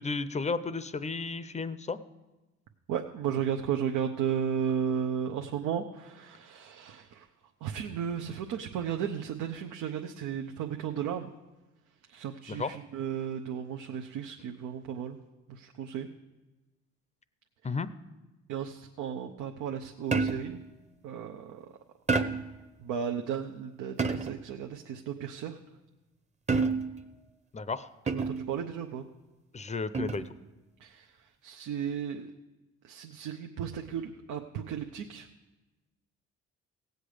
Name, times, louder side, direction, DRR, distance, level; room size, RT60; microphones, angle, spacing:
voice 1, 0.0-2.0 12.5-12.8 17.6-17.9 27.5-27.9 29.5-30.3, left 4 dB, 25° left, 14 dB, 0.6 m, -33 dB
voice 2, 2.9-7.3 7.6-11.3 12.1-15.2 15.5-16.1 18.5-20.6 21.0-21.7 22.8-25.6 28.1-29.0 30.8-31.1 31.4-32.3 32.8-35.3, right 8 dB, 85° right, 4 dB, 0.7 m, -34 dB
sound 1, 20.1-20.6 22.1-22.6 24.0-24.5 26.5-27.0 28.1-28.5 29.9-30.3, right 4 dB, 25° right, 0.8 m, -29 dB
17.0 x 8.0 x 5.0 m, 1.1 s
cardioid pair, 90°, 30 cm